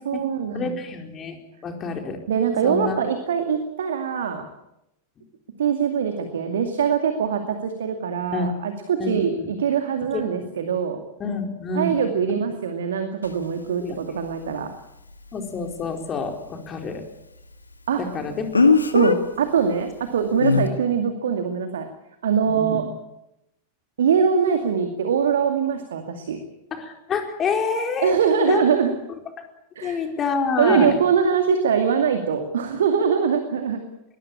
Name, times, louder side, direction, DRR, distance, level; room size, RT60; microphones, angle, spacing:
voice 1, 0.0-0.8 2.3-4.5 5.6-11.0 11.7-14.7 17.9-18.0 18.9-21.9 22.2-22.8 24.0-26.4 28.0-28.9 29.8-30.0 30.6-33.8, right 7 dB, 65° right, 6 dB, 2.3 m, -22 dB
voice 2, 0.5-2.2 2.6-3.1 8.3-8.5 9.0-9.5 10.1-10.2 11.2-12.0 13.8-14.0 15.3-17.0 18.0-18.4 22.5-22.8 26.7-28.1 28.4-28.6 29.8-30.9, left 4 dB, 25° left, 4 dB, 4.5 m, -27 dB
Speech, 13.2-13.3 18.5-19.2 20.4-20.7, left 4 dB, 80° left, 1.9 m, -17 dB
22.5 x 19.5 x 8.7 m, 0.88 s
figure-of-eight pair, 90°, 0 cm